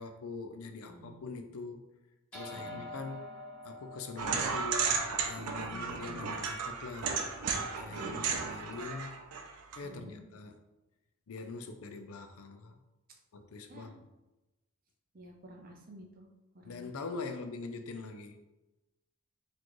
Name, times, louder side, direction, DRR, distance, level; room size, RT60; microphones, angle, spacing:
voice 1, 0.0-1.9 2.3-3.3 3.6-7.2 7.8-9.2 9.8-10.6 11.3-12.7 13.3-13.9 16.7-18.4, left 3 dB, 75° left, 6 dB, 0.4 m, -43 dB
voice 2, 0.9-1.2 2.5-2.9 5.6-6.3 7.9-8.7 9.8-10.2 13.7-14.0 15.1-16.3 16.5-16.9, right 1 dB, 40° right, 2 dB, 0.6 m, -51 dB
sound 1, 2.3-7.0, left 1 dB, 5° left, 1.1 m, -48 dB
sound 2, 4.2-9.8, right 5 dB, 85° right, 0.5 m, -34 dB
4.1 x 3.1 x 3.0 m, 1.0 s
head